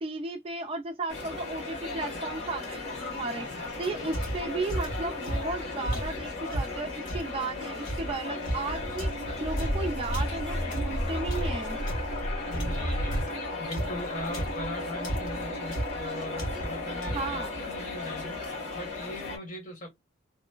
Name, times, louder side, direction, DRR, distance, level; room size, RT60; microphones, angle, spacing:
voice 1, 0.0-3.5 3.8-9.1 9.4-11.8 17.1-17.5, right 3 dB, 30° right, 0.4 m, -34 dB
sound 1, 1.1-19.4, left 2 dB, 60° left, 1.9 m, -36 dB
voice 2, 3.3-4.1 12.5-18.4 18.7-19.9, left 1 dB, 40° left, 1.2 m, -40 dB
sound 2, 4.1-7.3 7.8-12.2 12.5-14.7 15.0-15.4 15.7-16.0 16.4-16.8 17.0-17.4, right 1 dB, 85° left, 1.3 m, -34 dB
sound 3, 8.6-13.3, equal, 25° left, 1.0 m, -33 dB
3.0 x 2.0 x 2.2 m
head